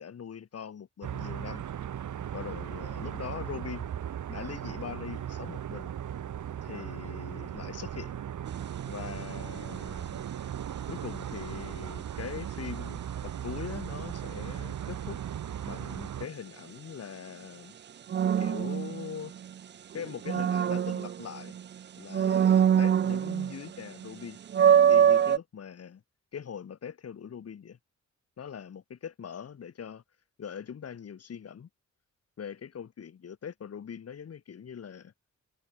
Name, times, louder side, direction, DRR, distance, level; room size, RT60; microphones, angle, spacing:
voice 1, 0.0-1.6 2.3-3.9 4.3-5.9 6.6-8.2 8.9-10.3 10.9-15.2 15.7-17.7 18.4-19.3 19.9-21.6 22.0-24.4 24.9-26.0 26.3-27.8 28.4-30.0 30.4-31.7 32.4-35.1, left 7 dB, 55° left, 3.3 m, -42 dB
sound 1, 1.0-16.3, right 10 dB, 80° right, 2.3 m, -37 dB
sound 2, 8.5-8.8 18.1-19.5 20.0-21.6 22.1-23.7 24.0-24.1 24.5-25.4, right 9 dB, 40° right, 0.4 m, -23 dB
wide cardioid pair, 155°, 30 cm